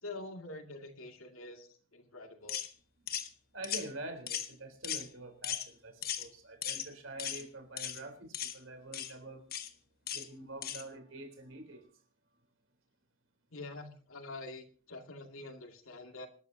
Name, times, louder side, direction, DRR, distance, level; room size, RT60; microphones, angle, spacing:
voice 1, 0.0-2.6 13.5-16.3, left 2 dB, 70° left, 4 dB, 2.4 m, -46 dB
sound 1, 2.5-2.7 3.1-3.3 3.6-3.9 4.3-4.5 4.8-5.1 5.4-5.7 6.0-6.3 6.6-6.9 7.2-7.4 7.8-8.0 8.3-8.6 8.9-9.1 9.5-9.7 10.1-10.3 10.6-10.8, left 10 dB, 45° left, 1.2 m, -37 dB
voice 2, 3.5-9.4 10.1-11.9, right 2 dB, 65° right, 6 dB, 3.8 m, -46 dB
26.5 x 12.5 x 2.8 m, 0.40 s
head